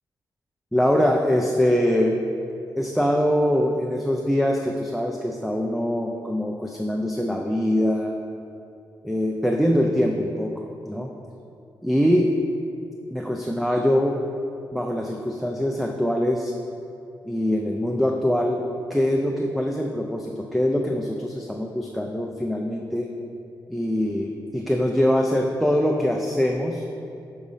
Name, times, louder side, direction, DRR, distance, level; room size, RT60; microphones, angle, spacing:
voice 1, 0.7-2.2 2.8-8.1 9.0-10.5 10.9-11.1 11.8-12.3 13.1-14.2 14.7-16.5 17.2-18.6 18.9-23.1 23.7-26.9, equal, ahead, 1 dB, 0.4 m, -23 dB
6.0 x 3.9 x 5.5 m, 2.6 s
cardioid pair, 90°, 8 cm